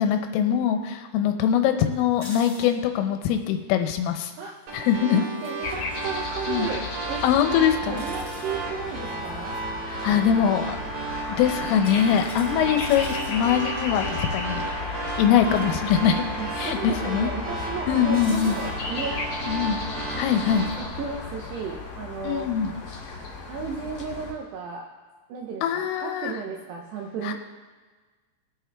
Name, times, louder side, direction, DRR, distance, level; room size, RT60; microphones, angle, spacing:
voice 1, 0.0-4.3 4.7-5.2 6.5-6.7 7.2-8.0 9.9-10.8 11.4-14.6 15.2-16.2 16.6-17.3 17.9-18.6 19.4-19.8 20.2-20.7 22.2-22.7 25.6-26.4 27.2-27.3, left 9 dB, 80° left, 6 dB, 3.2 m, -23 dB
sound 1, 2.1-2.7 5.2-5.6 8.0-8.6 9.2-9.6 11.8-13.3 15.4-15.7 16.0-16.1 18.1-18.7 20.1-20.8, left 2 dB, 25° left, 2.1 m, -45 dB
sound 2, 4.7-20.7, right 4 dB, 60° right, 4.3 m, -34 dB
voice 2, 5.1-7.2 7.9-9.6 10.1-10.6 16.4-19.2 20.1-20.4 20.8-22.5 23.4-24.9 25.3-27.3, right 5 dB, 80° right, 1 dB, 2.4 m, -34 dB
sound 3, 5.6-24.3, left 3 dB, 45° left, 2.2 m, -34 dB
21.0 x 8.5 x 3.5 m, 1.4 s
omnidirectional pair, 6.0 m